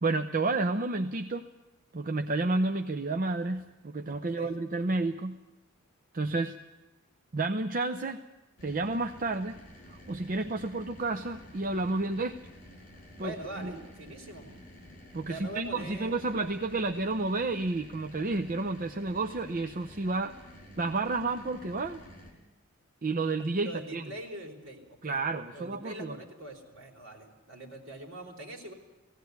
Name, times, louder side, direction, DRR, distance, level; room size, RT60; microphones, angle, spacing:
voice 1, 0.0-1.4 1.9-5.4 6.1-6.6 7.3-8.2 8.6-9.6 9.9-12.4 13.2-13.7 15.1-20.3 20.8-22.0 23.0-24.1 25.0-26.1, right 3 dB, 40° right, 5 dB, 0.6 m, -31 dB
voice 2, 4.2-4.6 13.2-14.5 15.3-16.3 23.6-25.2 25.5-28.7, right 1 dB, 65° right, 1 dB, 3.9 m, -43 dB
sound 1, 8.6-22.3, equal, 40° left, 5.3 m, -51 dB
17.5 x 16.5 x 9.4 m, 1.0 s
head